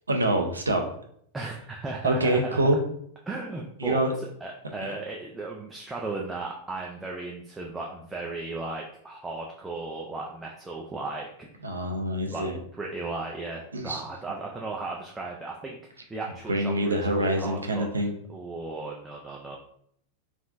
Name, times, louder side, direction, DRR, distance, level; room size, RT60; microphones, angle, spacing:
voice 1, 0.1-0.8 2.0-2.8 3.8-4.1 11.6-12.6 13.7-14.0 16.5-18.1, right 1 dB, 75° right, 4 dB, 0.4 m, -25 dB
voice 2, 1.3-2.8 3.3-11.5 12.3-17.9 18.3-19.6, right 3 dB, 10° right, -2 dB, 0.4 m, -36 dB
3.5 x 2.4 x 2.4 m, 0.67 s
figure-of-eight pair, 90°, 0 cm